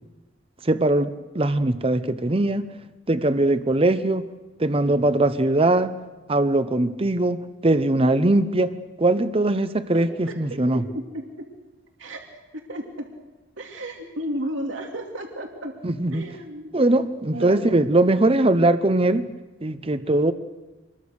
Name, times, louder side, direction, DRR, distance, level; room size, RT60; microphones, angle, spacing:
voice 1, 0.6-2.7 3.1-4.3 4.6-6.0 6.3-8.7 9.0-10.8 15.8-16.3 16.7-19.3 19.6-20.3, right 2 dB, 30° right, 12 dB, 0.8 m, -21 dB
voice 2, 9.9-11.5 12.0-12.2 12.5-13.1 13.6-15.7 16.1-17.0 17.3-17.6, right 1 dB, 85° right, 2 dB, 2.6 m, -34 dB
27.0 x 22.0 x 6.5 m, 1.1 s
head